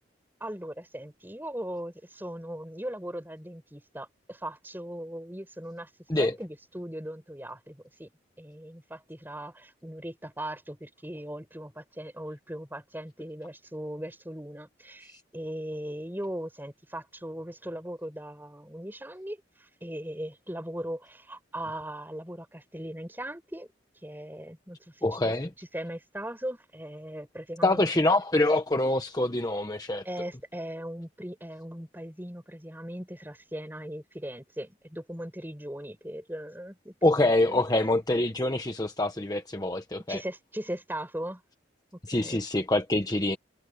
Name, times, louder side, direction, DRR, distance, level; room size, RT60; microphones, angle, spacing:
voice 1, 0.4-5.9 6.2-8.1 8.4-23.7 24.0-27.8 30.0-37.6 40.1-41.4 42.1-42.4, right 1 dB, 10° right, 6.3 m, -39 dB
voice 2, 25.0-25.5 27.6-30.0 37.0-40.2 42.1-43.4, left 2 dB, 20° left, 1.1 m, -25 dB
head